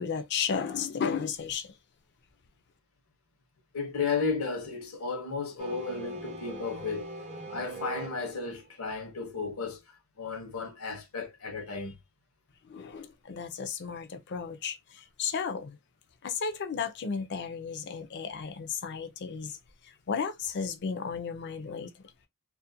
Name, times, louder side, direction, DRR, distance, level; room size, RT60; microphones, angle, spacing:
voice 1, 0.0-1.7 12.7-15.8 16.2-19.6 20.1-21.9, left 6 dB, 55° left, 0.4 m, -34 dB
voice 2, 3.7-7.1 7.5-12.0, left 4 dB, 75° left, 0.8 m, -34 dB
sound 1, 5.6-8.6, right 3 dB, 35° right, 0.5 m, -41 dB
2.4 x 2.1 x 2.7 m
head